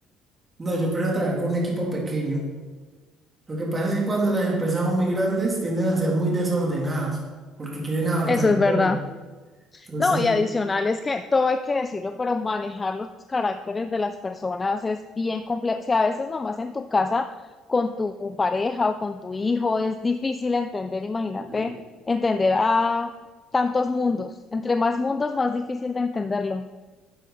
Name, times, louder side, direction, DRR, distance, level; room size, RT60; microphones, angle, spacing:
voice 1, 0.6-2.4 3.5-7.2 7.6-8.9 9.9-10.2 21.4-21.7, right 2 dB, 25° right, -2 dB, 3.1 m, -25 dB
voice 2, 8.3-9.0 9.7-17.3 17.7-21.8 22.1-23.1 23.5-26.6, left 3 dB, 20° left, 9 dB, 0.4 m, -24 dB
11.0 x 7.5 x 4.1 m, 1.3 s
cardioid pair, 105°, 0 cm